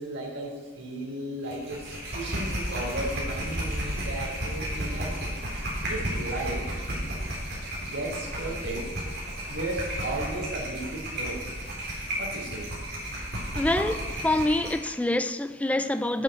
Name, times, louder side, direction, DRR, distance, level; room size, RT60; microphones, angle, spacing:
voice 1, 0.0-5.2 5.9-6.7 7.8-8.9 9.5-11.5 12.2-12.7, right 1 dB, 70° right, 3.5 m, -35 dB
sound 1, 1.5-14.9, equal, 55° right, 3.8 m, -33 dB
voice 2, 13.5-16.2, left 1 dB, 5° left, 0.4 m, -26 dB
8.8 x 7.7 x 7.7 m
head